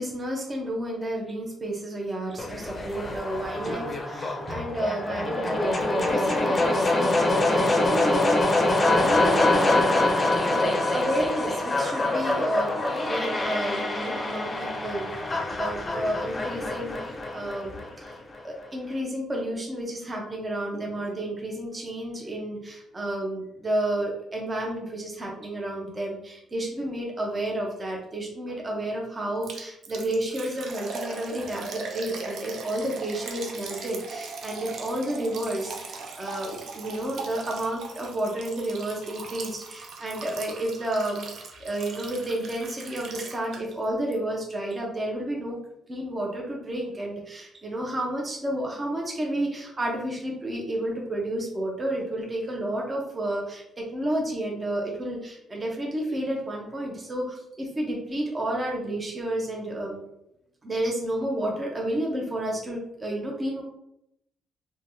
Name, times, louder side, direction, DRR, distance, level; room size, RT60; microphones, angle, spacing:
voice 1, 0.0-18.2 18.4-45.6 45.9-60.0 60.6-63.6, right 1 dB, 25° right, -1 dB, 0.7 m, -31 dB
sound 1, 2.4-18.4, left 2 dB, 30° left, 0.5 m, -25 dB
Liquid, 29.4-43.8 44.1-44.2 44.7-44.8, right 4 dB, 65° right, 0.5 m, -39 dB
3.1 x 2.2 x 2.7 m, 0.80 s
cardioid pair, 90°, 0 cm